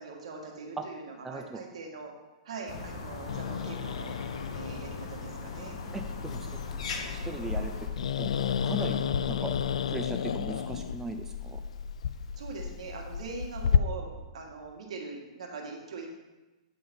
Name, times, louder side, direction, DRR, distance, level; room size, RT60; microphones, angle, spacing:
voice 1, 0.0-2.1 2.4-4.1 4.5-5.8 12.4-16.1, right 4 dB, 75° right, 0 dB, 1.8 m, -42 dB
voice 2, 1.2-1.6 5.9-6.6 6.9-7.7 8.2-9.5 9.9-11.6, right 3 dB, 10° right, 4 dB, 0.4 m, -38 dB
Musical instrument, 2.6-9.0, left 3 dB, 30° left, 1.7 m, -59 dB
sound 1, 2.7-7.9, left 4 dB, 70° left, 1.2 m, -39 dB
Growling, 3.3-13.8, left 7 dB, 85° left, 0.3 m, -32 dB
8.6 x 3.9 x 5.3 m, 1.1 s
hypercardioid pair, 145°, 3 cm